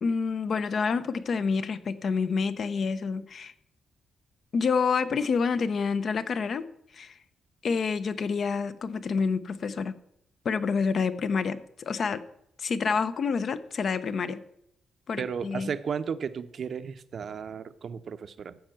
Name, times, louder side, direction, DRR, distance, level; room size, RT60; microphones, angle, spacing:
voice 1, 0.0-3.5 4.5-6.7 6.9-7.2 7.6-9.9 10.4-12.2 12.6-14.4 15.1-15.7, left 5 dB, 50° left, 13 dB, 0.8 m, -28 dB
voice 2, 15.2-18.6, right 6 dB, 50° right, 11 dB, 0.7 m, -34 dB
14.0 x 5.4 x 7.8 m, 0.77 s
cardioid pair, 125°, 0 cm